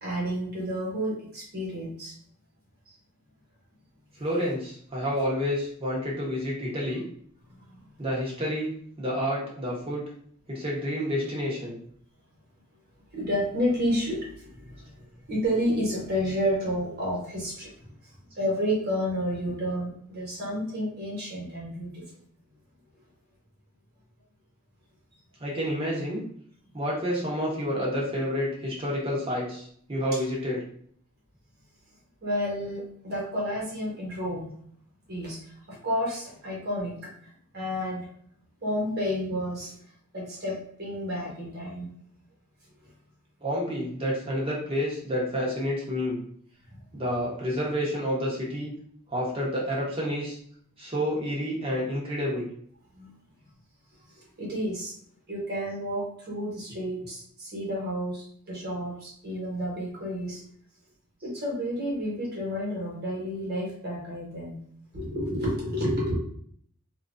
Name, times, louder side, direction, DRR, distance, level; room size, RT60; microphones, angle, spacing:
voice 1, 0.0-2.1 7.6-7.8 13.1-22.0 32.2-34.5 35.1-36.9 37.5-38.1 38.6-39.8 40.1-41.9 46.7-46.8 52.9-53.1 54.1-54.9 55.3-60.4 61.2-64.6 64.9-66.2, equal, 50° right, -4 dB, 1.3 m, -31 dB
voice 2, 4.2-7.0 8.0-10.0 10.5-11.8 25.4-26.2 26.7-29.6 29.9-30.6 43.4-46.2 46.9-48.7 49.1-50.4 50.8-52.5, equal, 25° right, -4 dB, 1.0 m, -29 dB
2.8 x 2.5 x 2.5 m, 0.62 s
head